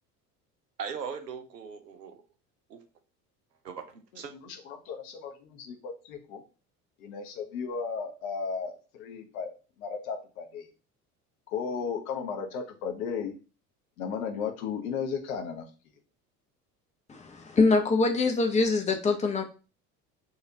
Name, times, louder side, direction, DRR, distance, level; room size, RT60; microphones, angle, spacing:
voice 1, 0.8-2.2 2.7-2.8 3.6-4.3, right 6 dB, 85° right, 8 dB, 0.7 m, -39 dB
voice 2, 4.3-6.4 7.0-9.5 9.8-10.7 11.5-13.3 14.0-15.6, left 6 dB, 60° left, 4 dB, 0.9 m, -35 dB
voice 3, 17.1-19.4, left 3 dB, 15° left, 4 dB, 0.6 m, -24 dB
4.1 x 2.5 x 2.7 m, 0.34 s
figure-of-eight pair, 65°, 48 cm